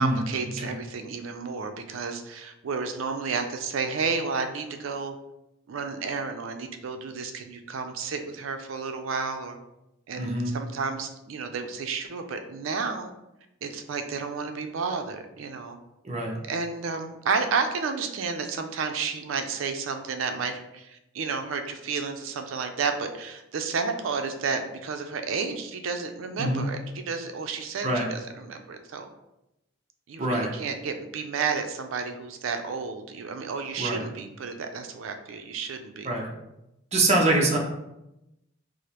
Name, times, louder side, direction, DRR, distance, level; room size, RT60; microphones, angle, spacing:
voice 1, 0.0-5.2 5.7-9.6 10.1-13.1 13.6-15.8 16.4-29.1 30.1-36.1, right 5 dB, 85° right, 6 dB, 0.4 m, -31 dB
voice 2, 10.2-10.5 16.0-16.4 26.4-26.7 27.8-28.1 30.2-30.5 33.8-34.1 36.0-36.3 36.9-37.6, right 2 dB, 35° right, 0 dB, 0.6 m, -24 dB
4.8 x 2.0 x 2.9 m, 0.89 s
head